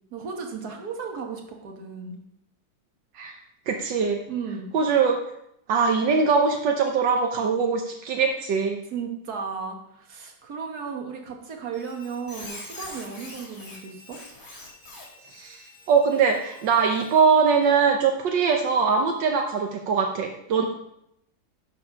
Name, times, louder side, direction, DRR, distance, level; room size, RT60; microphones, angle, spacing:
voice 1, 0.1-2.2 4.3-4.7 8.9-14.2, right 5 dB, 60° right, 2 dB, 1.8 m, -35 dB
voice 2, 3.7-4.2 4.7-5.2 5.7-8.8 15.3-15.6 15.9-20.7, right 5 dB, 80° right, 2 dB, 1.5 m, -22 dB
Squeak, 11.7-17.7, left 2 dB, 50° left, 3.0 m, -45 dB
11.0 x 4.1 x 6.1 m, 0.78 s
omnidirectional pair, 2.0 m